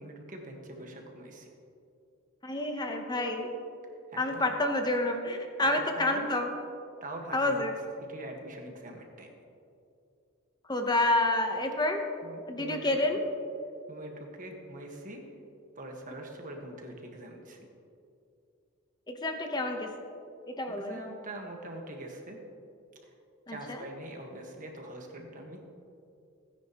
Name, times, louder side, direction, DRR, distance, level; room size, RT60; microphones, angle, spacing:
voice 1, 0.0-1.5 4.1-4.5 5.6-6.4 7.0-7.6 8.0-9.3 12.2-12.9 13.9-15.2 15.8-17.6 20.6-22.4 23.0-23.1 23.5-25.6, right 1 dB, 40° right, 2 dB, 1.5 m, -43 dB
voice 2, 2.4-3.6 4.2-6.6 7.3-7.7 10.7-12.2 12.5-13.2 19.1-19.9 20.5-21.0 23.5-23.9, left 2 dB, 20° left, 4 dB, 0.9 m, -29 dB
17.0 x 9.9 x 3.0 m, 2.6 s
head